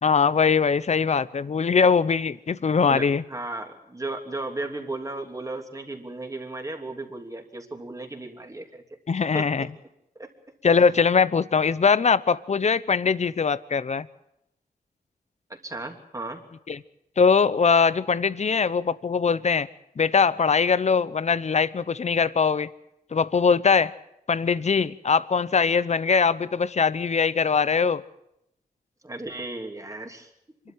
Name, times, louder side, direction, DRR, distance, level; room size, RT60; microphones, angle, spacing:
voice 1, 0.0-3.2 9.1-9.7 10.6-14.1 16.7-16.8 17.2-19.7 20.0-22.7 23.1-23.9 24.3-28.0, left 5 dB, 50° left, 17 dB, 0.8 m, -21 dB
voice 2, 2.9-8.8 9.3-9.7 10.1-10.3 15.5-16.4 29.0-30.3, right 2 dB, 20° right, 4 dB, 3.0 m, -35 dB
26.5 x 12.5 x 9.2 m, 0.81 s
wide cardioid pair, 115°, 15 cm